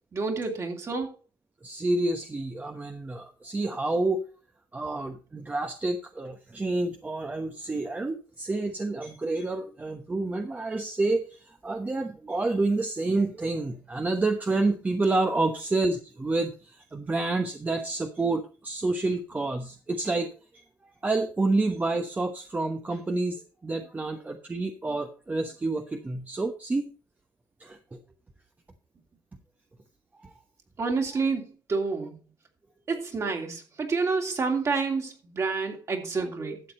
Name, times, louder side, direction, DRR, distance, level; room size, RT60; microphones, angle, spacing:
voice 1, 0.1-1.1 30.8-32.2 32.9-36.6, right 4 dB, 40° right, 2.8 m, -29 dB
voice 2, 1.6-4.2 4.7-20.6 21.0-26.9 27.6-28.0 30.2-30.3 36.2-36.6, right 2 dB, 20° right, 1.0 m, -29 dB
12.0 x 7.3 x 4.4 m
cardioid pair, 100°, 8 cm